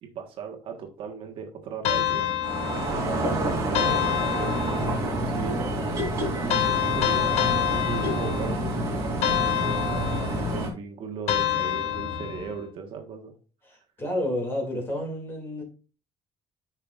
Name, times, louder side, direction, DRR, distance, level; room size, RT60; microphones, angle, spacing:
voice 1, 0.0-2.3 3.5-9.1 9.4-13.3, right 6 dB, 55° right, 1.3 m, -38 dB
sound 1, 1.8-3.2 3.7-5.1 6.5-8.7 9.2-10.5 11.3-12.6, left 10 dB, 70° left, 0.9 m, -27 dB
sound 2, 2.4-10.7, right 1 dB, 30° right, 2.9 m, -28 dB
voice 2, 13.6-15.6, left 1 dB, 20° left, 2.5 m, -30 dB
11.0 x 5.7 x 2.4 m
cardioid pair, 165°, 11 cm